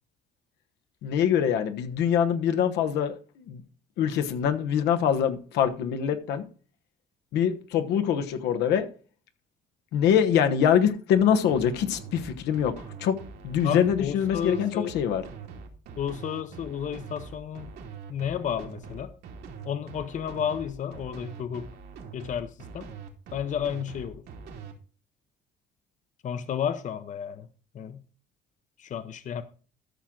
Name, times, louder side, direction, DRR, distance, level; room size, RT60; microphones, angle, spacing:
voice 1, 1.0-3.6 4.0-6.5 7.3-8.9 9.9-12.7 13.0-13.2 13.4-15.2, left 8 dB, 85° left, 1.2 m, -24 dB
sound 1, 11.5-24.7, right 5 dB, 80° right, 2.6 m, -43 dB
voice 2, 13.6-14.9 16.0-17.7 18.1-19.1 19.6-21.7 22.1-22.9 23.3-24.2 26.2-27.5 27.7-28.0 28.8-29.4, left 8 dB, 50° left, 0.8 m, -32 dB
13.5 x 6.2 x 3.8 m
cardioid pair, 110°, 17 cm